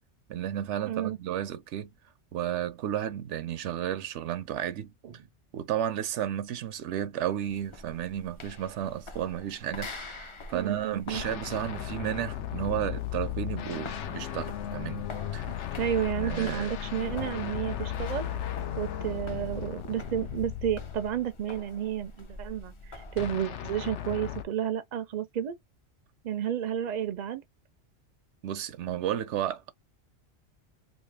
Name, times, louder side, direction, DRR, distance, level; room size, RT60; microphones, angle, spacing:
voice 1, 0.3-1.9 2.3-4.9 5.5-15.1 15.3-15.5 16.2-16.7 28.4-29.7, right 11 dB, 80° right, 0.9 m, -33 dB
voice 2, 0.9-1.2 5.0-5.1 10.5-11.2 15.5-18.3 18.8-25.6 26.2-27.4, right 10 dB, 55° right, 0.5 m, -31 dB
sound 1, 7.4-23.3, left 2 dB, 35° left, 0.5 m, -46 dB
sound 2, 11.1-21.4 23.2-24.4, left 10 dB, 85° left, 0.9 m, -35 dB
3.1 x 2.5 x 3.3 m
omnidirectional pair, 1.2 m